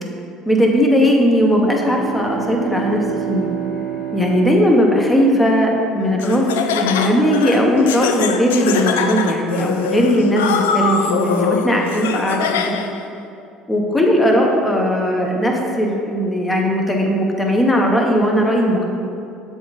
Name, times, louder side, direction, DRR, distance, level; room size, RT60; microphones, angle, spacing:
voice 1, 0.4-3.5 4.1-12.8 13.7-18.8, equal, 15° left, 0 dB, 1.1 m, -17 dB
sound 1, 1.7-5.7, right 10 dB, 70° right, 0.8 m, -29 dB
Laughter, 6.2-13.0, left 6 dB, 85° left, 0.3 m, -23 dB
7.2 x 3.5 x 4.1 m, 2.6 s
hypercardioid pair, 75°, 0 cm